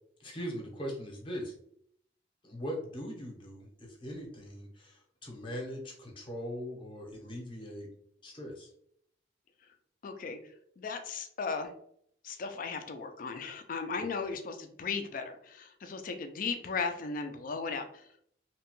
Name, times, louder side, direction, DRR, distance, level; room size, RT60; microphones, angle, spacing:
voice 1, 0.2-1.5 2.4-7.9 8.2-8.7 14.2-14.3, equal, 25° left, -1 dB, 0.7 m, -40 dB
voice 2, 10.0-10.4 10.8-11.7 12.2-18.2, left 4 dB, 45° left, 7 dB, 0.4 m, -36 dB
2.8 x 2.2 x 2.9 m, 0.67 s
head